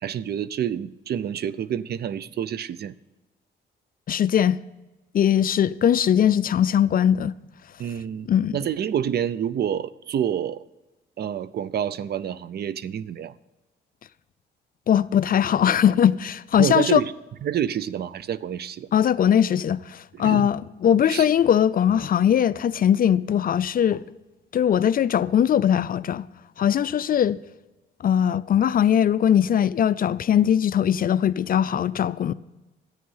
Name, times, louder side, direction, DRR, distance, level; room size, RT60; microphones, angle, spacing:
voice 1, 0.0-2.9 7.8-8.3 8.5-10.6 11.2-13.3 16.6-17.1 17.4-18.9 20.1-20.5 21.1-21.3, right 9 dB, 55° right, 0.6 m, -28 dB
voice 2, 4.1-4.6 5.1-7.3 8.3-8.6 14.9-17.0 18.9-24.0 24.5-26.3 26.6-27.4 28.0-32.3, left 9 dB, 45° left, 0.5 m, -20 dB
11.5 x 9.3 x 5.6 m
cardioid pair, 90°, 20 cm